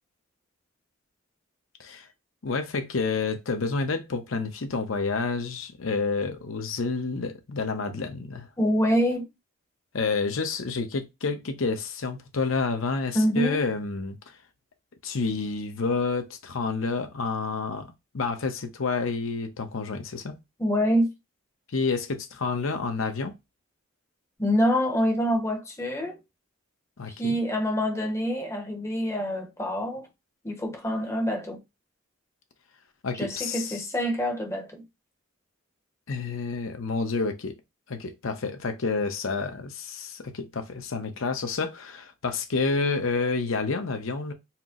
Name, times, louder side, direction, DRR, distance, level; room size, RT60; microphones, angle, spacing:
voice 1, 2.4-8.5 9.9-14.3 15.0-20.4 21.7-23.3 27.0-27.4 33.0-33.8 36.1-37.5 37.9-44.3, left 4 dB, 70° left, 0.7 m, -29 dB
voice 2, 8.6-9.3 13.1-13.6 20.6-21.1 24.4-26.2 27.1-30.1 30.4-31.6 33.1-34.8, equal, 15° left, 0.7 m, -26 dB
4.3 x 2.0 x 3.7 m
head